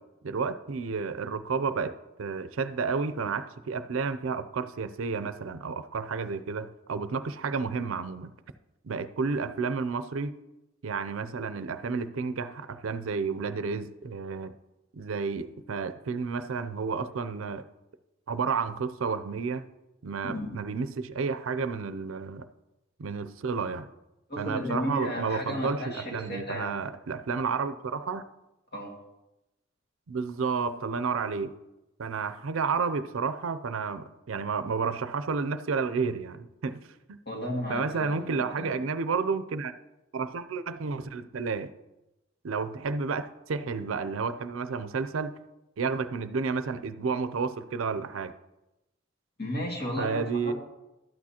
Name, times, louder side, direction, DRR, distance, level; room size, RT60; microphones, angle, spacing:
voice 1, 0.2-1.9 2.2-8.3 8.8-10.4 10.8-14.5 14.9-17.6 18.3-19.7 20.0-22.5 23.0-23.9 24.4-28.2 30.1-31.5 32.0-36.8 37.1-37.2 37.7-39.7 40.1-41.7 42.4-45.3 45.8-48.3 50.0-50.5, right 5 dB, 80° right, 12 dB, 0.5 m, -31 dB
voice 2, 24.3-26.8 28.7-28.9 37.3-38.3 38.6-38.7 49.4-50.5, equal, 50° left, -2 dB, 2.2 m, -34 dB
12.5 x 8.6 x 2.9 m, 0.97 s
head